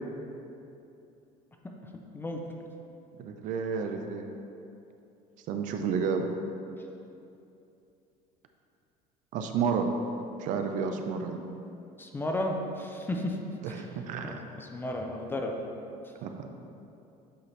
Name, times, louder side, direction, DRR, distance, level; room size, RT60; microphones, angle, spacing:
voice 1, 3.2-4.3 5.5-6.3 9.3-9.9 10.4-11.4 13.6-14.4 16.2-16.5, right 6 dB, 60° right, 5 dB, 0.5 m, -31 dB
voice 2, 12.0-13.4 13.7-13.8 14.2-15.5, left 1 dB, 15° left, 1 dB, 0.5 m, -33 dB
7.9 x 4.2 x 3.2 m, 2.8 s
cardioid pair, 135°, 15 cm